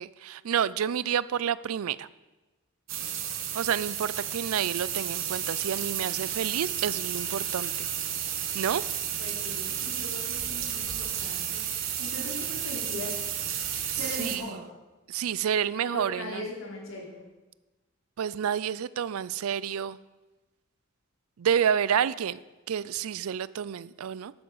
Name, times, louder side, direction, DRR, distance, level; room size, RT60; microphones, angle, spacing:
voice 1, 0.0-2.1 3.5-7.9 8.5-8.9 13.9-14.6 15.1-16.5 18.2-20.0 21.4-22.4 22.7-24.3, right 8 dB, 85° right, 19 dB, 0.4 m, -29 dB
sound 1, 2.9-14.4, right 9 dB, 60° right, 1.2 m, -32 dB
voice 2, 9.2-11.6 12.0-13.2 13.9-14.6 15.8-17.2, left 1 dB, 70° left, -2 dB, 3.4 m, -39 dB
11.5 x 8.9 x 5.5 m, 1.1 s
head